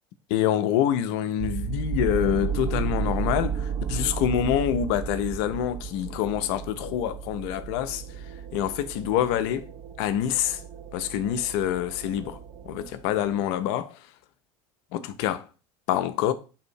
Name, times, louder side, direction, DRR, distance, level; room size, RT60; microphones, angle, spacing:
voice 1, 0.3-8.0 8.5-9.7 10.0-10.6 10.9-12.4 12.7-14.0 14.9-15.4 15.9-16.3, left 10 dB, 60° left, 0.5 m, -26 dB
sound 1, 1.4-13.3, right 7 dB, 45° right, 0.6 m, -33 dB
3.5 x 2.6 x 4.3 m
hypercardioid pair, 75°, 15 cm